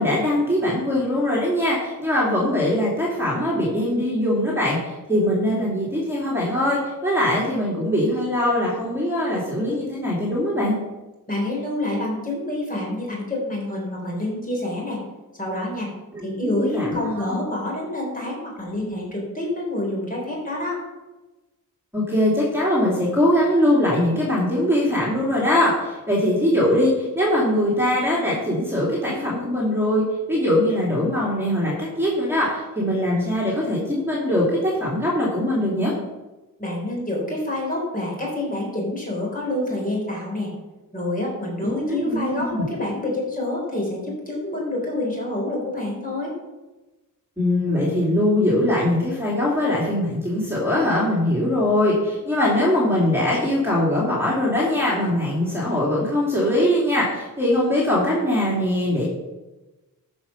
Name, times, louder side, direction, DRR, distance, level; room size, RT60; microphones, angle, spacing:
voice 1, 0.0-10.7 16.1-17.3 21.9-35.9 41.6-42.6 47.4-59.0, left 1 dB, 5° right, -6 dB, 2.9 m, -22 dB
voice 2, 11.3-15.0 15.4-15.9 16.2-20.8 36.6-40.5 40.9-46.3, left 1 dB, 25° left, -3 dB, 4.1 m, -27 dB
13.0 x 5.4 x 5.8 m, 1.1 s
wide cardioid pair, 130°, 35 cm